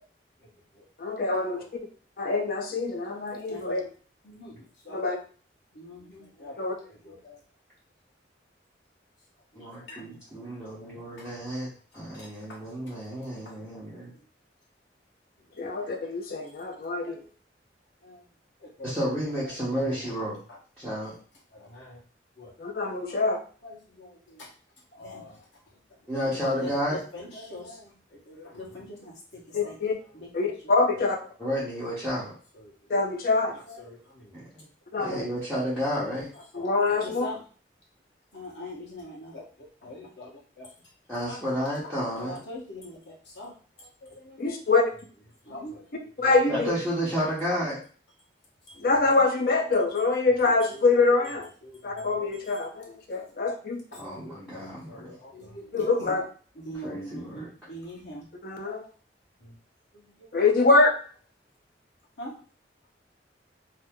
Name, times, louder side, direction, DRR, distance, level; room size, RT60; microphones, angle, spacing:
voice 1, 0.4-0.8 1.3-1.7 3.5-3.9 4.2-5.0 5.7-7.4 10.1-10.2 11.2-11.5 11.9-12.6 13.1-14.2 17.0-17.2 18.0-18.2 18.6-20.1 20.5-20.6 21.0-21.2 21.5-22.0 22.4-22.5 22.9-23.2 23.6-24.5 24.9-25.5 25.9-30.5 30.9-31.3 32.0-32.7 33.5-34.4 34.9-35.1 36.3-37.4 38.3-40.7 41.3-41.4 41.8-44.6 45.5-46.3 48.7-48.9 50.7-51.3 51.6-52.5 53.9-56.2 56.5-58.3 58.6-58.9 59.4-59.5 59.9-60.3 62.2-62.3, left 1 dB, 85° left, -3 dB, 1.2 m, -44 dB
voice 2, 1.0-1.6 2.2-3.8 4.9-5.2 6.6-6.7 15.6-17.2 22.6-23.4 29.5-29.9 30.3-31.2 32.9-33.6 34.9-35.2 36.5-37.3 44.4-44.8 46.2-46.7 48.8-51.5 51.8-53.8 55.7-56.2 58.4-58.9 60.3-61.0, left 3 dB, 55° left, 3 dB, 0.5 m, -24 dB
voice 3, 9.6-11.7 11.9-14.1 18.8-20.4 20.8-21.1 26.1-27.0 31.4-32.3 34.3-34.6 35.0-36.3 41.1-42.4 46.5-47.8 54.0-55.1 56.8-57.5, equal, ahead, -12 dB, 0.9 m, -31 dB
2.8 x 2.0 x 3.5 m, 0.40 s
head